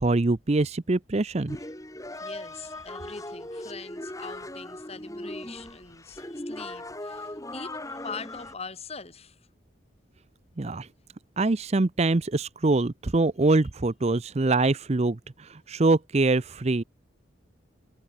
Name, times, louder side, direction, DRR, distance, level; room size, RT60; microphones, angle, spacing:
voice 1, 0.0-1.6 10.6-10.9 11.4-15.2 15.7-16.8, right 2 dB, 35° right, 0.6 m, -24 dB
sound 1, 1.5-8.5, left 1 dB, 15° left, 4.2 m, -39 dB
voice 2, 2.2-9.5 13.4-13.7, left 4 dB, 35° left, 2.7 m, -43 dB
head